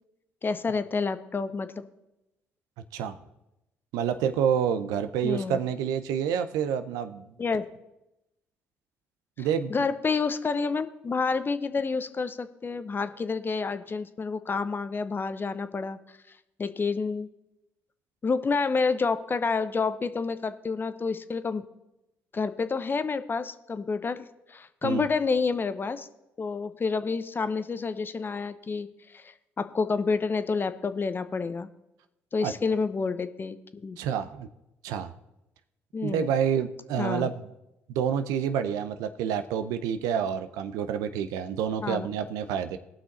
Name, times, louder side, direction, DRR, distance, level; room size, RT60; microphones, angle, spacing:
voice 1, 0.4-1.8 5.2-5.6 7.4-7.6 9.4-16.0 16.6-17.3 18.2-21.6 22.3-26.1 26.4-31.7 32.3-34.0 35.9-36.2 37.0-37.3 41.8-42.1, left 4 dB, 35° left, 11 dB, 0.8 m, -29 dB
voice 2, 3.9-7.3 9.4-9.7 24.8-25.1 32.4-32.5 34.0-34.5 34.8-35.1 36.0-37.3 37.9-42.8, right 8 dB, 75° right, 10 dB, 0.6 m, -28 dB
17.5 x 6.0 x 4.1 m, 0.90 s
hypercardioid pair, 50°, 6 cm